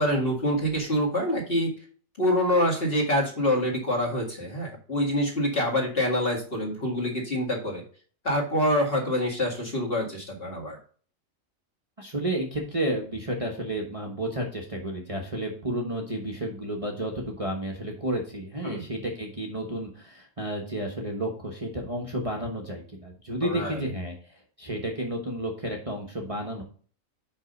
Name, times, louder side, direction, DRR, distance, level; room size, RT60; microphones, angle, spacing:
voice 1, 0.0-1.7 2.2-7.8 8.2-10.8 18.6-18.8 23.4-23.8, left 1 dB, 45° left, -1 dB, 2.2 m, -26 dB
voice 2, 12.0-26.6, right 1 dB, 25° right, 0 dB, 1.1 m, -31 dB
5.4 x 5.4 x 5.2 m, 0.43 s
omnidirectional pair, 1.4 m